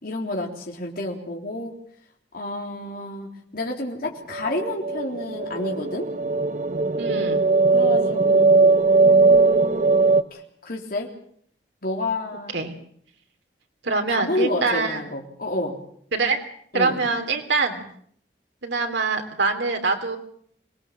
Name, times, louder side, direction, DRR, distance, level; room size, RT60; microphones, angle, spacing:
voice 1, 0.0-1.7 2.3-6.1 7.7-9.9 10.3-11.1 11.8-12.6 13.9-15.7 16.7-17.0, left 1 dB, 55° left, 0 dB, 3.6 m, -30 dB
sound 1, 4.3-10.2, right 3 dB, 45° right, 1.2 m, -19 dB
voice 2, 7.0-7.5 12.5-12.7 13.8-15.0 16.1-16.4 16.7-17.9 18.6-20.2, right 4 dB, 85° right, 3 dB, 3.2 m, -24 dB
25.5 x 19.0 x 7.5 m, 0.63 s
head